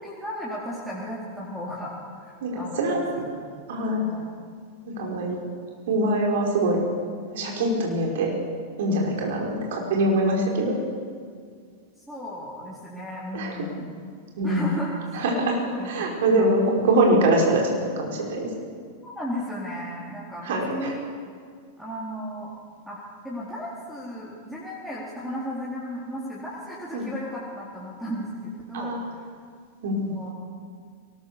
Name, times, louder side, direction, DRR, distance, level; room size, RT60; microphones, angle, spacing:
voice 1, 0.0-3.4 4.0-4.3 5.3-5.5 12.1-13.9 14.4-15.4 15.7-16.5 19.0-21.0 21.8-22.5 22.9-29.3 30.0-30.3, equal, 5° right, -6 dB, 4.2 m, -35 dB
voice 2, 2.4-3.0 3.7-4.0 4.9-5.4 5.9-6.8 7.3-8.3 8.8-10.8 13.3-13.6 14.4-14.7 15.1-17.7 18.0-18.5 20.4-20.9 26.9-27.1 28.7-29.0 29.8-30.1, right 1 dB, 55° right, 0 dB, 5.3 m, -23 dB
22.5 x 19.5 x 6.9 m, 2.1 s
figure-of-eight pair, 90°, 0 cm